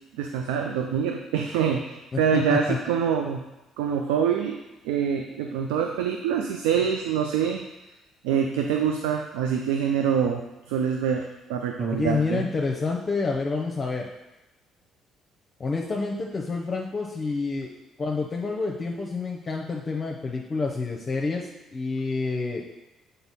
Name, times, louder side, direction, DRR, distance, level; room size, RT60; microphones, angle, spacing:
voice 1, 0.1-3.4 3.8-4.6 4.8-7.6 8.2-10.4 10.7-12.5, right 7 dB, 80° right, 3 dB, 0.4 m, -25 dB
voice 2, 2.1-2.8 11.8-14.1 15.6-17.7 18.0-22.6, left 4 dB, 40° left, -1 dB, 0.7 m, -28 dB
7.0 x 4.1 x 4.1 m, 1.0 s
hypercardioid pair, 50°, 0 cm